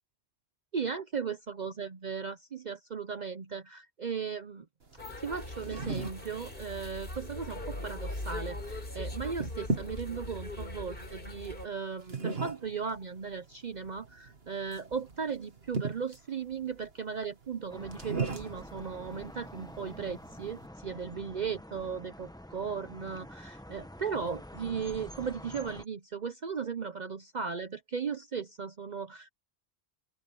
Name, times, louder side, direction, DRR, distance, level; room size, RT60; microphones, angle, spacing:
voice 1, 0.7-4.6 5.2-29.3, right 6 dB, 45° right, 0.8 m, -37 dB
sound 1, 4.8-20.7, right 3 dB, 65° right, 2.1 m, -40 dB
sound 2, 5.0-11.7, left 1 dB, 55° left, 4.7 m, -40 dB
sound 3, 17.7-25.9, equal, 5° left, 1.0 m, -47 dB
open air
omnidirectional pair, 1.1 m